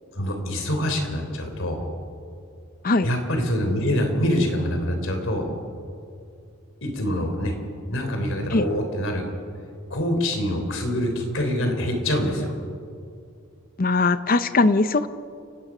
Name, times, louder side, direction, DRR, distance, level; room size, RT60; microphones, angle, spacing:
voice 1, 0.1-1.8 3.0-5.5 6.8-7.6 7.9-9.3 9.9-12.5, equal, 60° left, 4 dB, 3.7 m, -25 dB
voice 2, 13.8-15.1, left 3 dB, 40° left, 13 dB, 0.7 m, -20 dB
30.0 x 17.5 x 6.2 m, 2.4 s
head